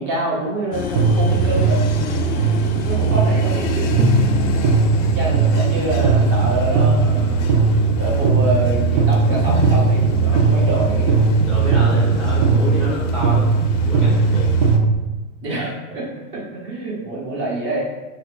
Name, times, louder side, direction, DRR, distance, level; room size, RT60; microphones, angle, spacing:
voice 1, 0.0-1.9 2.8-3.9 5.1-7.5 8.0-11.1 15.4-17.9, right 2 dB, 30° right, -3 dB, 0.9 m, -26 dB
sound 1, 0.7-14.8, left 6 dB, 60° left, 0.5 m, -28 dB
sound 2, 1.0-15.0, right 4 dB, 65° right, 0.6 m, -18 dB
voice 2, 11.4-14.6, left 1 dB, 5° left, -11 dB, 0.4 m, -28 dB
2.9 x 2.8 x 3.0 m, 1.1 s
supercardioid pair, 135°, 41 cm